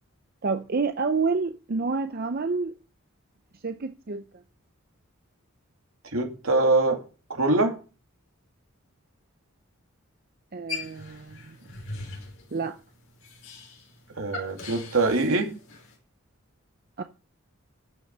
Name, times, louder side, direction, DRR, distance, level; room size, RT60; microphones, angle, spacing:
voice 1, 0.4-2.7 3.6-4.2 10.5-11.6 12.5-12.8 17.0-17.1, right 4 dB, 45° right, 0.6 m, -28 dB
voice 2, 6.1-7.0 7.3-7.8 14.2-15.5, right 2 dB, 80° right, 2.7 m, -23 dB
sound 1, 10.7-16.0, left 3 dB, 70° left, 4.6 m, -41 dB
13.0 x 6.3 x 5.4 m
head